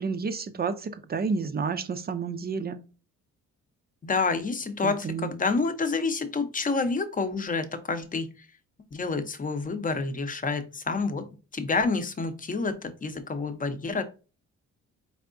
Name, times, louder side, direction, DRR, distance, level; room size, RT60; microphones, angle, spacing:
voice 1, 0.0-2.8 4.8-5.3, right 5 dB, 35° right, 11 dB, 0.5 m, -30 dB
voice 2, 4.0-8.3 8.9-11.3 11.5-14.0, left 4 dB, 25° left, 9 dB, 0.7 m, -28 dB
4.5 x 3.4 x 2.5 m, 0.33 s
cardioid pair, 90°, 30 cm